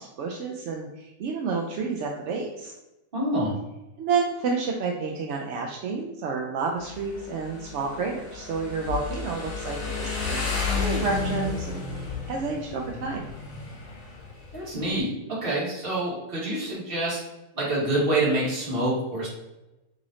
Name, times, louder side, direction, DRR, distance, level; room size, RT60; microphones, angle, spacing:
voice 1, 0.0-2.7 4.0-10.5 10.7-13.2, right 4 dB, 65° right, 1 dB, 0.7 m, -30 dB
voice 2, 3.1-3.6 14.5-15.1 15.4-17.2 17.5-19.3, right 1 dB, 40° right, -6 dB, 1.6 m, -26 dB
Motorcycle, 6.8-15.0, left 4 dB, 65° left, 1.8 m, -32 dB
3.9 x 3.2 x 3.7 m, 0.98 s
omnidirectional pair, 1.5 m